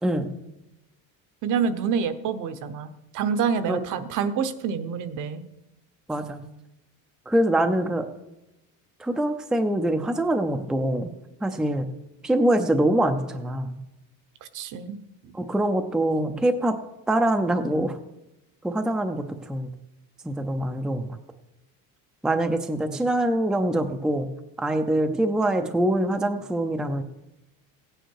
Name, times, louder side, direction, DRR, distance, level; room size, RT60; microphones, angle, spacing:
voice 1, 1.4-5.4 14.5-15.3, right 6 dB, 55° right, 11 dB, 1.0 m, -27 dB
voice 2, 6.1-6.4 7.3-8.1 9.0-11.1 11.4-11.9 12.2-13.8 15.3-16.8 17.1-18.0 18.6-19.7 20.2-21.2 22.2-24.3 24.6-27.0, right 1 dB, ahead, 7 dB, 0.5 m, -24 dB
16.5 x 9.1 x 4.7 m, 0.94 s
cardioid pair, 160°, 35 cm